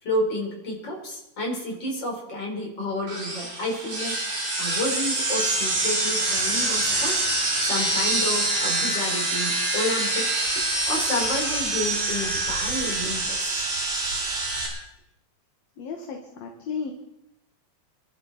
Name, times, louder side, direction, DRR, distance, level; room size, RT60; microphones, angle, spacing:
voice 1, 0.0-4.2 4.6-7.2 7.6-13.6, left 1 dB, 35° left, -1 dB, 4.7 m, -30 dB
sound 1, 3.1-14.7, right 2 dB, 75° right, 7.9 m, -25 dB
voice 2, 15.8-16.9, left 6 dB, 60° left, 2 dB, 2.6 m, -34 dB
27.0 x 12.5 x 4.1 m, 0.86 s
omnidirectional pair, 3.7 m